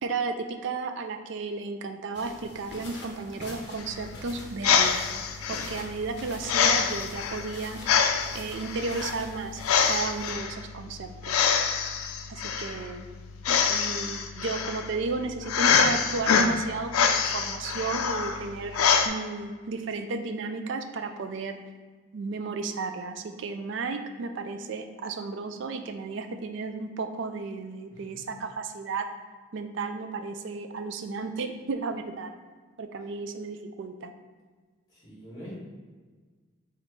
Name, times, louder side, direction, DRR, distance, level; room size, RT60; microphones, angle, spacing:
voice 1, 0.0-4.9 5.5-7.8 8.3-11.4 12.3-13.1 13.5-18.8 19.0-21.6 22.1-29.1 29.5-32.3 32.8-34.1, right 4 dB, 60° right, 7 dB, 0.3 m, -33 dB
sound 1, 2.1-10.3, left 2 dB, 50° left, 0.7 m, -45 dB
sound 2, 3.8-19.1, left 6 dB, 90° left, 0.4 m, -26 dB
voice 2, 34.9-35.6, equal, 20° left, -7 dB, 1.4 m, -43 dB
4.2 x 2.5 x 4.5 m, 1.4 s
head